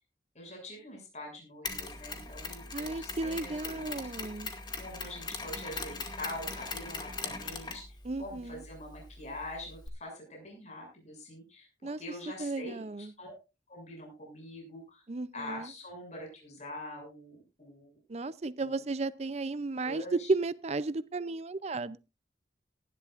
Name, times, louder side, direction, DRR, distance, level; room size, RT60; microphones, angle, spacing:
voice 1, 0.4-4.1 4.8-13.4 13.7-15.0 15.3-17.9 18.6-18.8 19.8-20.3, left 1 dB, 40° left, 6.8 m, -44 dB
Mechanisms, 1.6-9.9, left 4 dB, 25° left, 2.2 m, -41 dB
voice 2, 2.7-4.5 8.1-8.6 11.8-12.0 12.4-13.1 15.1-15.7 18.1-22.0, right 3 dB, 35° right, 0.5 m, -34 dB
19.0 x 11.5 x 2.5 m
head